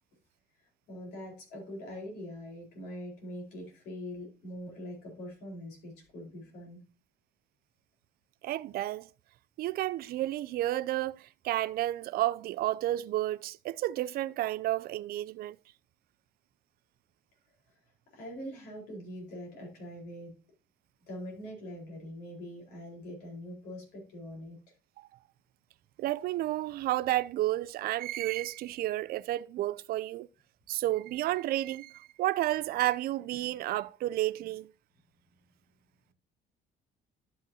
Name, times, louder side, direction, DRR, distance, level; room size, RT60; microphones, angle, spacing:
voice 1, 0.9-6.8 17.7-17.8 18.1-20.4 21.1-24.6, equal, 85° left, 4.3 m, -43 dB
voice 2, 8.4-9.1 9.6-15.6 25.0-25.1 26.0-30.3 30.7-34.7, right 15 dB, 65° right, 0.4 m, -31 dB
11.5 x 6.0 x 2.7 m
cardioid pair, 110°, 17 cm